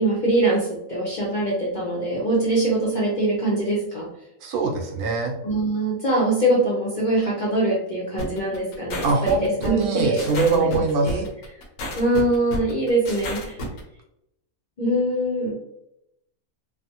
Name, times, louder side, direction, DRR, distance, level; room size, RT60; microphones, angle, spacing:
voice 1, 0.0-4.1 5.4-11.2 12.0-13.6 14.8-15.5, right 1 dB, 45° left, -4 dB, 0.6 m, -23 dB
voice 2, 4.4-5.3 9.0-11.2, right 3 dB, 90° right, 1 dB, 1.1 m, -23 dB
sound 1, 8.2-13.8, left 1 dB, 70° left, 1.1 m, -32 dB
3.2 x 2.0 x 2.8 m, 0.81 s
omnidirectional pair, 1.5 m